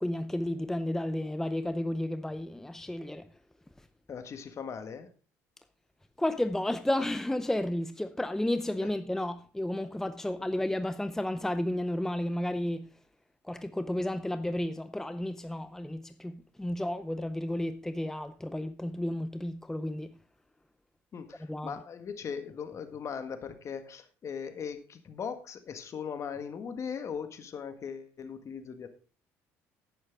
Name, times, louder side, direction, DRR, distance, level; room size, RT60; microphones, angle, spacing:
voice 1, 0.0-3.3 6.2-12.9 13.4-20.2 21.5-21.8, left 1 dB, 5° left, 0.6 m, -32 dB
voice 2, 4.1-5.1 21.1-28.9, left 6 dB, 45° left, 1.7 m, -39 dB
10.0 x 10.0 x 3.6 m
hypercardioid pair, 70°, 7 cm